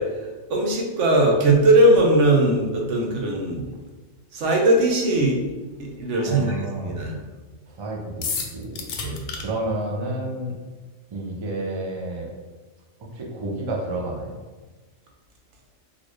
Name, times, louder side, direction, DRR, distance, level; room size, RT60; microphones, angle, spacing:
voice 1, 0.0-3.7 4.3-5.4 5.8-7.2 9.0-9.3, right 1 dB, 70° right, 0 dB, 1.0 m, -20 dB
voice 2, 6.3-7.2 7.7-10.5 11.1-12.3 13.1-14.4, right 2 dB, 50° right, -1 dB, 0.3 m, -30 dB
sound 1, 8.2-9.4, left 5 dB, 85° left, 1.0 m, -29 dB
3.9 x 2.4 x 3.1 m, 1.3 s
omnidirectional pair, 1.3 m